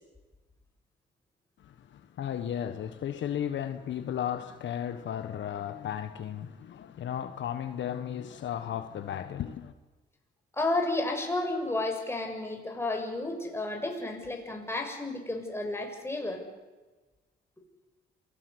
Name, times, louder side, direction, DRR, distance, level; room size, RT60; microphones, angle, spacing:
voice 1, 1.6-9.7, left 9 dB, 70° left, 9 dB, 1.5 m, -35 dB
voice 2, 10.5-16.4, left 2 dB, 10° left, 2 dB, 6.8 m, -32 dB
27.5 x 19.5 x 8.3 m, 1.2 s
cardioid pair, 90°, 20 cm